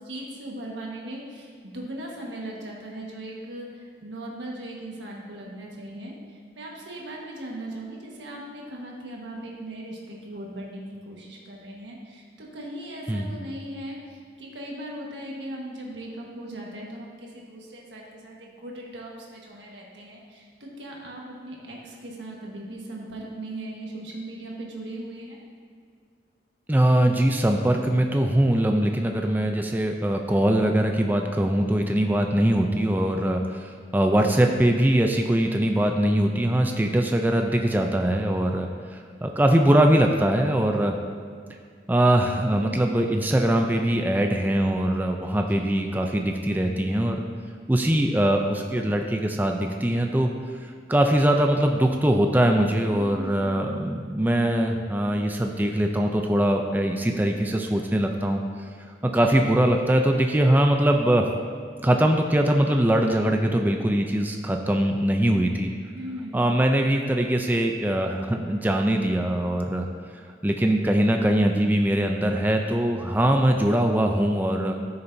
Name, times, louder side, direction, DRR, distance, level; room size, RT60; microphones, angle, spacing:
voice 1, 0.0-3.7 4.0-6.1 6.5-14.0 14.4-25.4 34.2-34.4 42.5-43.1 45.4-45.8 52.9-53.8 59.0-59.3 65.9-66.4, right 1 dB, 80° right, -2 dB, 1.5 m, -38 dB
voice 2, 26.7-40.9 41.9-47.2 47.7-50.3 50.6-58.7 59.0-61.3 61.8-65.7 66.3-69.9 70.4-74.7, right 1 dB, 10° right, 3 dB, 0.4 m, -22 dB
13.0 x 6.8 x 2.7 m, 2.1 s
head